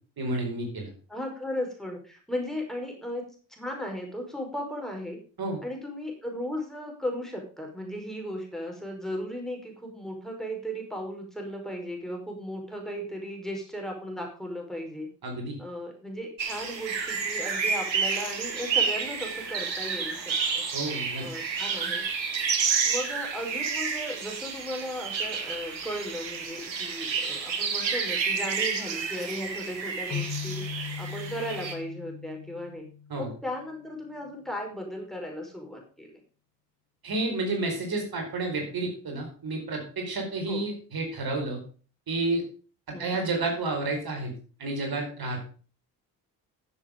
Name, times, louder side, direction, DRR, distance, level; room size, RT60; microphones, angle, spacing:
voice 1, 0.2-0.9 5.4-5.6 15.2-15.6 20.7-21.2 33.1-33.3 37.0-41.6 42.1-42.4 43.0-44.3 44.6-45.5, right 2 dB, 45° right, 2 dB, 4.6 m, -30 dB
voice 2, 1.1-3.2 3.5-5.2 5.6-15.1 15.6-20.7 21.2-22.0 22.8-32.9 33.2-36.1 40.5-40.6 42.9-43.2, equal, ahead, 1 dB, 5.0 m, -36 dB
sound 1, 16.4-31.7, right 5 dB, 90° right, 1.3 m, -30 dB
sound 2, 30.1-33.6, left 7 dB, 50° left, 1.7 m, -38 dB
13.5 x 7.3 x 5.2 m, 0.39 s
figure-of-eight pair, 45°, 50 cm